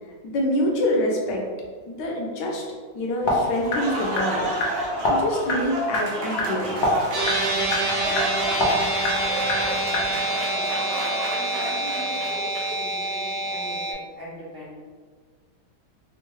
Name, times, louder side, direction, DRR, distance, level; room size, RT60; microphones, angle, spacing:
voice 1, 0.2-1.4 1.9-2.6 2.9-4.5 5.1-6.9, left 1 dB, 70° left, -1 dB, 1.2 m, -26 dB
sound 1, 3.2-10.3, left 1 dB, 90° left, 0.6 m, -28 dB
Applause, 3.5-12.9, right 1 dB, 85° right, 1.4 m, -30 dB
sound 2, 7.1-13.9, right 2 dB, 65° right, 1.2 m, -27 dB
voice 2, 10.0-10.9 11.3-14.7, equal, 45° right, -8 dB, 0.7 m, -40 dB
3.6 x 2.2 x 3.0 m, 1.5 s
omnidirectional pair, 2.1 m